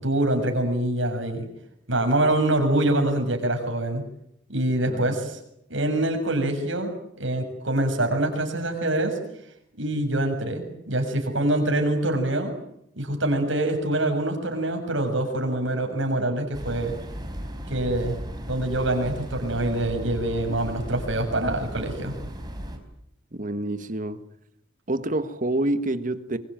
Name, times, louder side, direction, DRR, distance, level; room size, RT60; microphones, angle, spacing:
voice 1, 0.0-1.5 1.9-4.0 4.5-5.4 5.7-9.2 9.8-12.5 13.0-16.9 17.7-18.2 18.4-22.2, right 1 dB, 75° right, 7.0 m, -25 dB
voice 2, 4.9-5.2 23.3-24.2 24.9-26.4, right 1 dB, 40° right, 1.6 m, -27 dB
sound 1, 16.5-22.8, equal, 20° right, 4.4 m, -36 dB
24.0 x 23.0 x 9.2 m
head